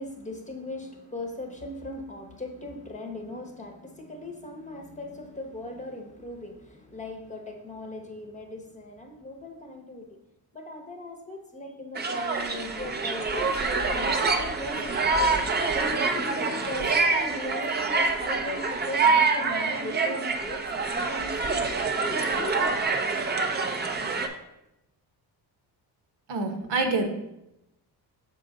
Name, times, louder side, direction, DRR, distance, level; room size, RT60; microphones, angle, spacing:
voice 1, 0.0-10.2 10.5-15.0 15.5-22.9, left 1 dB, 20° left, 3 dB, 0.9 m, -38 dB
sound 1, 12.0-24.3, right 4 dB, 25° right, 0.6 m, -26 dB
voice 2, 26.3-27.1, right 3 dB, 75° right, 5 dB, 1.1 m, -26 dB
6.5 x 4.6 x 3.9 m, 0.87 s
cardioid pair, 130°, 41 cm